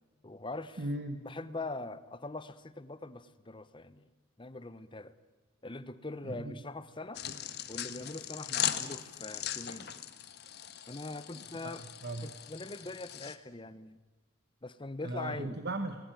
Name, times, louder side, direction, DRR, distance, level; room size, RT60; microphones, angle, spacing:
voice 1, 0.2-0.8 1.2-4.1 4.4-5.2 5.6-7.3 7.7-10.0 10.9-11.8 12.2-14.0 14.6-15.6, left 2 dB, 25° left, 15 dB, 0.8 m, -42 dB
voice 2, 0.8-1.3 6.2-6.5 11.4-12.3 15.0-16.0, right 1 dB, 50° right, 8 dB, 1.3 m, -38 dB
sound 1, 7.2-13.4, left 10 dB, 50° left, 1.4 m, -39 dB
29.5 x 20.0 x 9.1 m, 1.3 s
head